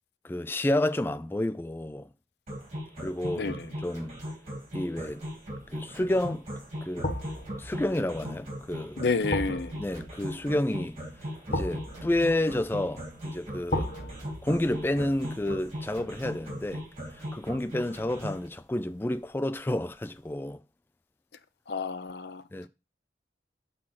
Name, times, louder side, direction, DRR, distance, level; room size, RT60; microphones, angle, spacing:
voice 1, 0.2-2.1 3.0-4.1 4.7-5.2 5.7-6.4 6.8-7.1 7.6-9.0 9.8-11.0 11.5-13.9 14.4-16.8 17.1-20.6 22.5-22.7, left 1 dB, 10° left, 0.4 m, -30 dB
sound 1, 2.5-18.4, equal, 40° right, 3.1 m, -38 dB
voice 2, 3.4-3.7 9.0-9.8 21.7-22.4, left 4 dB, 65° left, 0.6 m, -30 dB
sound 2, 5.2-5.6 7.0-18.0 18.4-18.5, left 1 dB, 45° left, 1.3 m, -38 dB
6.3 x 4.1 x 5.7 m
head